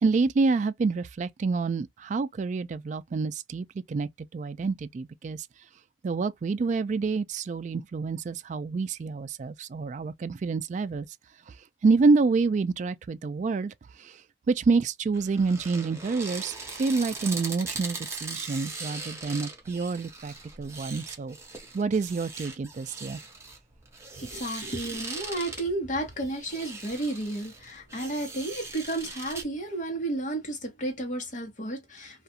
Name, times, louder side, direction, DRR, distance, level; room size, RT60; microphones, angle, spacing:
voice 1, 0.0-5.5 6.0-11.1 11.8-13.7 14.0-14.1 14.5-21.4 21.7-23.2, right 4 dB, 45° right, 0.3 m, -27 dB
sound 1, 15.1-29.4, right 3 dB, 15° right, 0.7 m, -40 dB
voice 2, 24.2-32.2, right 2 dB, 45° left, 1.1 m, -32 dB
2.4 x 2.3 x 2.7 m
head